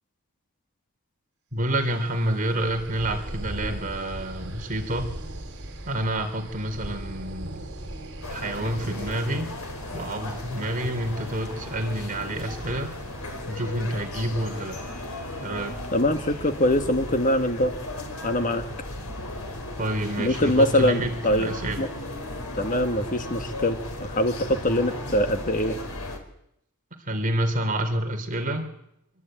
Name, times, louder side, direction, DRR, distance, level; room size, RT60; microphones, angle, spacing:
voice 1, 1.5-5.1 5.8-7.7 8.3-9.5 9.9-12.9 13.5-14.8 15.4-15.8 19.8-21.8 24.7-24.8 27.0-28.7, right 1 dB, 40° right, 5 dB, 3.3 m, -28 dB
sound 1, 1.9-13.6, right 1 dB, 55° right, 4.6 m, -39 dB
sound 2, 8.2-26.2, left 1 dB, 85° left, 4.7 m, -36 dB
voice 2, 15.9-17.7 18.2-18.7 20.2-21.5 21.8-21.9 22.5-25.8, left 1 dB, 35° left, 8 dB, 1.6 m, -23 dB
24.5 x 24.0 x 9.0 m, 0.78 s
head